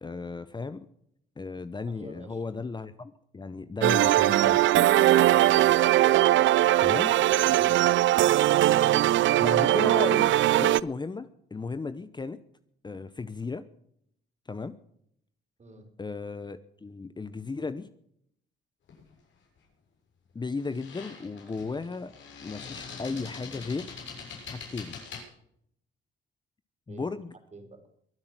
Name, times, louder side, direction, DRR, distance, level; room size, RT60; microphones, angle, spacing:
voice 1, 0.0-0.9 1.4-4.9 6.8-7.2 9.4-12.4 12.8-13.7 14.5-14.8 16.0-17.9 20.3-22.1 22.4-23.9 24.4-25.0 26.9-27.3, left 4 dB, 20° left, 12 dB, 0.8 m, -35 dB
voice 2, 1.9-2.4 7.5-7.9 15.6-15.9 26.9-27.1 27.5-27.9, right 2 dB, 35° right, 7 dB, 4.0 m, -47 dB
sound 1, 3.8-10.8, right 14 dB, 70° right, 0.5 m, -20 dB
sound 2, 18.9-19.1 20.6-25.2, left 5 dB, 70° left, 6.8 m, -43 dB
23.5 x 8.7 x 6.0 m, 0.70 s
cardioid pair, 90°, 20 cm